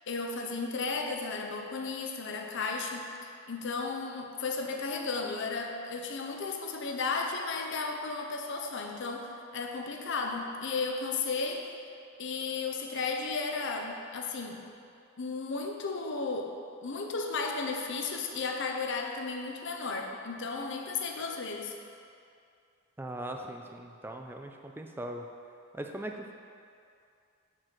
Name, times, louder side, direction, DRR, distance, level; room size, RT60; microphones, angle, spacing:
voice 1, 0.1-3.1 3.5-11.7 12.2-14.6 15.2-16.6 16.8-21.7, left 4 dB, 55° left, 2 dB, 0.7 m, -34 dB
voice 2, 23.0-25.2 25.7-26.3, right 1 dB, 10° right, 3 dB, 0.4 m, -40 dB
6.1 x 4.5 x 6.5 m, 2.4 s
head